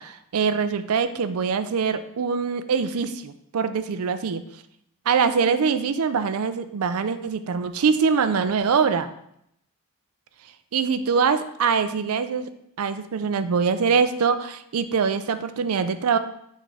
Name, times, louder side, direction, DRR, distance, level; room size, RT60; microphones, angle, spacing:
voice 1, 0.0-4.4 5.1-9.1 10.7-12.5 12.8-16.2, right 5 dB, 80° right, 11 dB, 0.4 m, -23 dB
8.4 x 3.7 x 3.4 m, 0.75 s
head